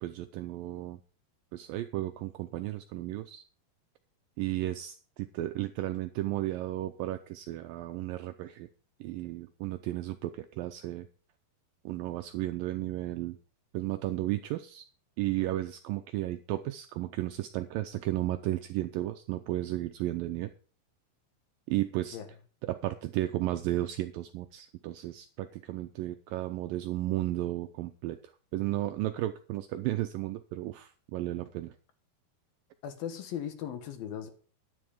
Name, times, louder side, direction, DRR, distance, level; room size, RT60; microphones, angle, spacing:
voice 1, 0.0-1.0 1.5-3.4 4.4-8.7 9.0-11.1 11.9-13.4 13.7-14.9 15.2-20.5 21.7-22.2 22.6-31.8, right 15 dB, 80° right, 8 dB, 2.0 m, -34 dB
voice 2, 32.8-34.3, left 9 dB, 70° left, 8 dB, 3.0 m, -38 dB
11.0 x 10.0 x 5.1 m, 0.41 s
omnidirectional pair, 4.6 m